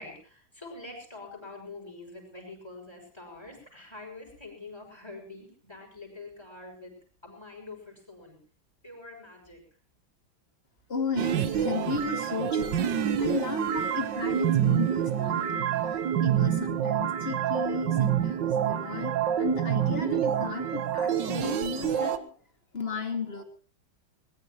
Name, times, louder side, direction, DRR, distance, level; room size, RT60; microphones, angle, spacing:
voice 1, 0.0-8.4 8.8-9.6, left 2 dB, 10° left, 1 dB, 6.2 m, -45 dB
voice 2, 10.9-22.3 22.7-23.4, left 4 dB, 30° left, 5 dB, 2.5 m, -34 dB
sound 1, 11.2-22.2, right 9 dB, 65° right, 1.6 m, -27 dB
20.5 x 20.0 x 3.1 m, 0.38 s
omnidirectional pair, 2.2 m